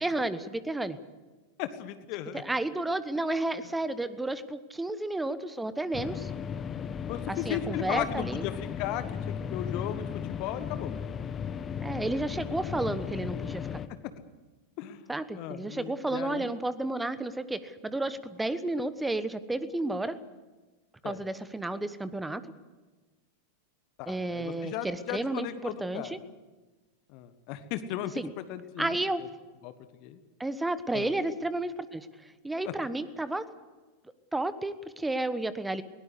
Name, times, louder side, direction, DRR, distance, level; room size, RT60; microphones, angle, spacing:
voice 1, 0.0-1.0 2.3-6.3 7.3-8.4 11.8-13.7 15.1-20.2 21.0-22.4 24.1-26.2 28.2-28.3 28.8-29.3 30.4-33.5 34.3-35.8, right 2 dB, 5° right, 15 dB, 1.2 m, -32 dB
voice 2, 1.6-2.4 7.1-10.9 14.8-15.1 15.4-16.6 21.0-21.2 24.0-26.2 27.1-29.3 29.6-29.7 30.0-30.2 30.9-31.1 32.6-32.7, left 11 dB, 45° left, 11 dB, 1.4 m, -36 dB
sound 1, 5.9-13.9, left 7 dB, 25° left, 1.0 m, -36 dB
21.0 x 18.0 x 8.3 m, 1.2 s
figure-of-eight pair, 90°, 0 cm